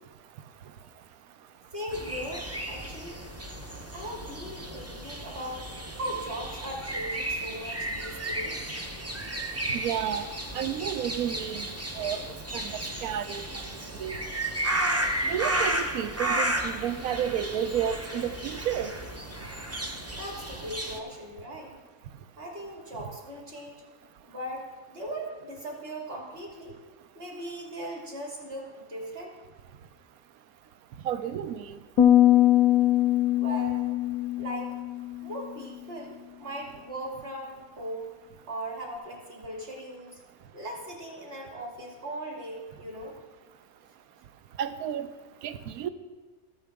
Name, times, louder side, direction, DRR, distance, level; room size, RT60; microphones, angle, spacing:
voice 1, 1.7-3.2 3.9-5.7 6.0-8.8 20.1-21.8 22.4-23.8 24.2-26.7 27.2-29.4 33.4-34.0 34.4-34.8 35.2-38.1 38.5-40.2 40.5-43.2, right 1 dB, 40° right, -1 dB, 2.4 m, -38 dB
sound 1, 1.9-21.0, right 1 dB, 20° right, 0.5 m, -33 dB
voice 2, 9.7-10.3 10.5-11.7 12.0-12.2 12.5-12.7 13.0-13.4 14.0-14.2 15.3-18.9 31.0-31.8 44.6-45.1 45.4-45.9, right 9 dB, 85° right, 11 dB, 1.1 m, -31 dB
sound 2, 32.0-35.4, left 12 dB, 85° left, 1.1 m, -22 dB
13.5 x 9.0 x 3.5 m, 1.4 s
omnidirectional pair, 1.5 m